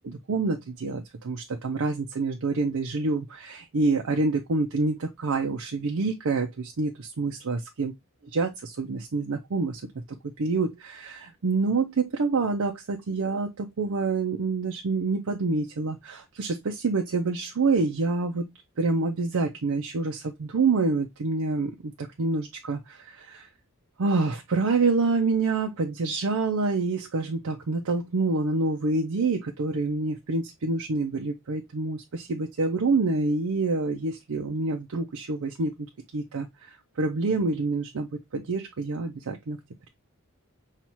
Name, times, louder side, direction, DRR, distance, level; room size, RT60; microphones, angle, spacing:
voice 1, 0.3-7.9 8.3-10.0 10.4-18.5 18.8-23.5 24.0-39.6, right 3 dB, 80° right, 0.6 m, -27 dB
5.5 x 2.4 x 2.9 m
head